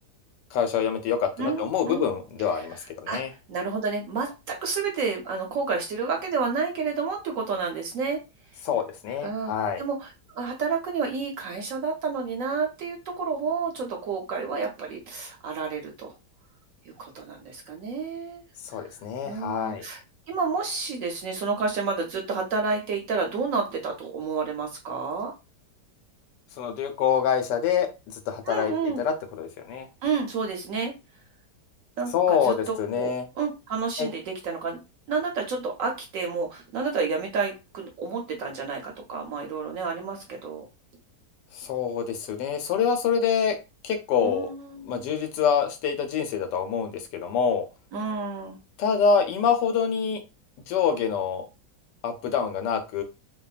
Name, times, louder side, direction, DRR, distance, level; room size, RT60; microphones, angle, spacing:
voice 1, 0.5-3.3 8.6-9.8 18.6-19.9 26.6-29.9 32.1-33.2 34.0-34.1 41.5-43.6 43.8-44.5 44.8-47.7 48.8-50.2 50.7-51.4 52.0-53.0, left 7 dB, 85° left, 7 dB, 1.2 m, -26 dB
voice 2, 1.4-2.1 2.6-2.7 3.1-3.2 3.5-8.2 9.2-16.1 17.0-18.4 18.7-18.8 19.2-20.0 20.3-25.3 28.5-29.0 30.0-30.9 32.0-34.8 35.1-40.6 44.2-45.1 47.9-48.6, right 4 dB, 70° right, 2 dB, 0.8 m, -30 dB
2.8 x 2.2 x 2.3 m, 0.28 s
omnidirectional pair, 1.8 m